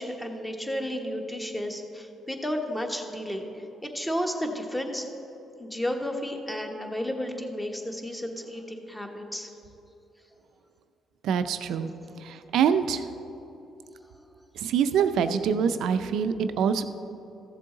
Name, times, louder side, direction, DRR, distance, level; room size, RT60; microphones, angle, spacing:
voice 1, 0.0-5.1 5.6-9.5, equal, 10° left, 3 dB, 1.2 m, -32 dB
voice 2, 11.2-11.9 12.2-13.0 14.6-16.8, right 7 dB, 80° right, 10 dB, 0.5 m, -25 dB
14.5 x 7.4 x 3.9 m, 3.0 s
cardioid pair, 90°, 0 cm